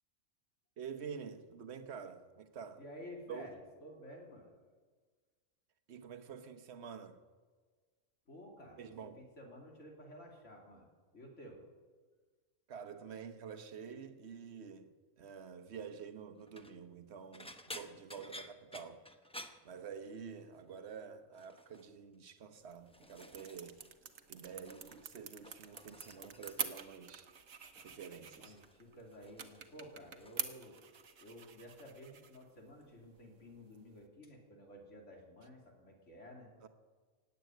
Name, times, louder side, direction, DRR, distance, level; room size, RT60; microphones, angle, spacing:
voice 1, 0.8-2.8 3.3-3.5 5.9-7.2 8.8-9.2 12.7-19.0 19.6-23.8 24.3-27.3 27.8-28.6 36.6-36.7, right 6 dB, 60° right, 1.2 m, -48 dB
voice 2, 2.8-4.5 8.3-10.9 11.1-11.6 28.3-30.8 31.2-36.5, equal, 65° left, 3.2 m, -53 dB
sound 1, 16.4-16.8 17.3-20.4 20.6-21.0 21.3-21.9 22.5-24.0 24.2-25.1 25.3-26.9 27.7-28.0 28.4-30.5 30.8-31.3 31.7-31.9 33.2-33.3, left 1 dB, 5° left, 0.6 m, -53 dB
sound 2, 22.5-34.1, right 7 dB, 90° right, 1.4 m, -48 dB
17.0 x 8.4 x 9.2 m
omnidirectional pair, 1.3 m